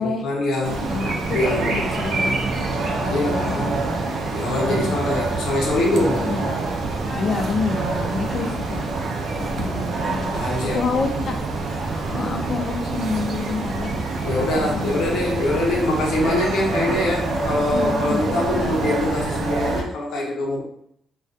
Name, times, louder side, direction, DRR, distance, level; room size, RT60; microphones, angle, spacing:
voice 1, 0.0-0.9 1.3-1.7 3.0-3.8 4.3-6.3 8.0-8.4 9.0-10.8 14.2-20.6, left 2 dB, 80° left, -2 dB, 0.7 m, -24 dB
sound 1, 0.6-19.8, right 3 dB, 65° right, 0.4 m, -26 dB
voice 2, 0.9-1.4 1.6-4.0 4.7-5.2 6.2-6.7 7.2-8.8 9.4-10.3 10.7-11.4 12.1-13.9 14.4-15.1 17.7-18.8, left 4 dB, 55° left, 4 dB, 0.4 m, -28 dB
sound 2, 1.9-19.2, right 1 dB, 20° right, 0.6 m, -37 dB
2.3 x 2.2 x 2.6 m, 0.69 s
cardioid pair, 90°, 0 cm